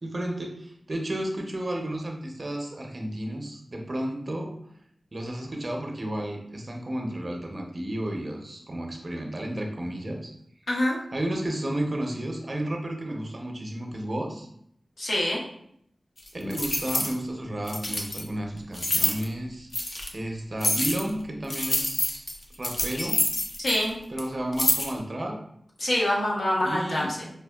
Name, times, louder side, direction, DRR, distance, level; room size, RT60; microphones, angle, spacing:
voice 1, 0.0-4.6 5.1-10.3 11.1-14.5 16.3-19.7 20.1-22.3 22.5-23.3 24.1-25.4 26.6-27.1, right 1 dB, 45° right, 1 dB, 0.6 m, -32 dB
voice 2, 10.7-11.0 15.0-15.4 23.6-24.0 25.8-27.3, left 1 dB, 80° left, -4 dB, 1.0 m, -25 dB
sound 1, 16.3-17.1 17.7-18.2 18.7-19.2 19.7-20.1 20.6-21.1 21.5-23.9 24.2-24.3 24.5-24.9, left 1 dB, 50° left, 0.6 m, -27 dB
5.0 x 2.3 x 2.3 m, 0.70 s
cardioid pair, 50°, 0 cm